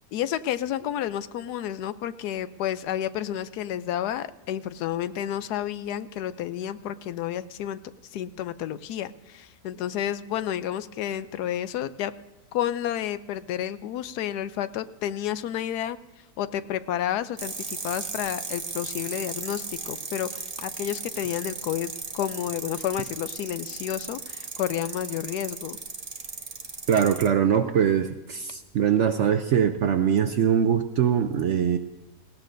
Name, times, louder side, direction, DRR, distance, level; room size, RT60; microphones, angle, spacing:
voice 1, 0.1-7.8 8.1-12.1 12.5-16.0 16.4-25.8, left 11 dB, 80° left, 14 dB, 1.1 m, -30 dB
sound 1, 17.4-27.3, right 4 dB, 30° right, 0.9 m, -36 dB
voice 2, 26.9-31.8, right 8 dB, 65° right, 8 dB, 0.7 m, -22 dB
18.5 x 16.0 x 2.6 m, 1.1 s
omnidirectional pair, 1.7 m